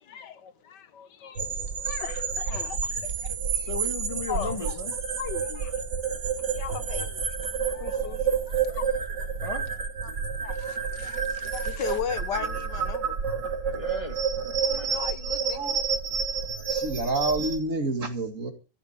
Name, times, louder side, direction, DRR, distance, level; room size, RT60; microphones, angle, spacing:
voice 1, 0.1-1.4 1.7-3.7 4.3-4.8 5.2-5.7 6.6-7.2 7.6-8.8 10.0-10.1 10.4-13.2 14.6-15.8, left 8 dB, 75° left, 1.7 m, -37 dB
sound 1, 1.4-17.6, right 6 dB, 85° right, 3.2 m, -29 dB
voice 2, 3.7-4.9 9.4-9.7 13.7-14.2, left 1 dB, 20° left, 1.7 m, -35 dB
voice 3, 16.7-18.5, right 2 dB, 45° right, 2.5 m, -29 dB
14.5 x 7.8 x 8.8 m
omnidirectional pair, 1.8 m